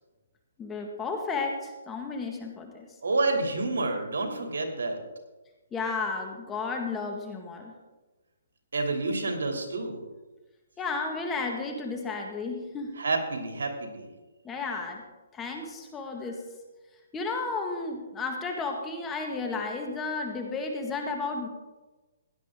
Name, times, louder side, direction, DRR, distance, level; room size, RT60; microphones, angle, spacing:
voice 1, 0.6-2.9 5.7-7.7 10.8-12.9 14.4-15.0 15.3-16.4 17.1-21.5, left 4 dB, 15° left, 2 dB, 1.7 m, -33 dB
voice 2, 3.0-5.0 8.7-10.0 13.0-14.1, right 3 dB, 80° right, 3 dB, 2.8 m, -29 dB
16.5 x 11.0 x 3.7 m, 1.2 s
hypercardioid pair, 150°, 0 cm